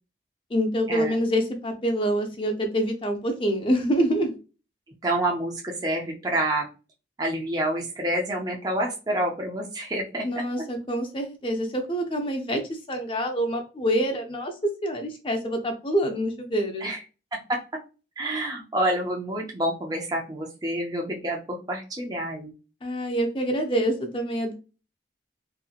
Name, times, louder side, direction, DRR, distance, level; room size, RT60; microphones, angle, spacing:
voice 1, 0.5-4.4 10.2-16.9 22.8-24.5, equal, 30° left, 3 dB, 0.5 m, -26 dB
voice 2, 5.0-6.7 7.2-10.3 16.8-17.0 17.3-17.6 18.2-22.5, right 1 dB, 20° right, 0 dB, 0.5 m, -28 dB
2.7 x 2.7 x 2.4 m, 0.33 s
head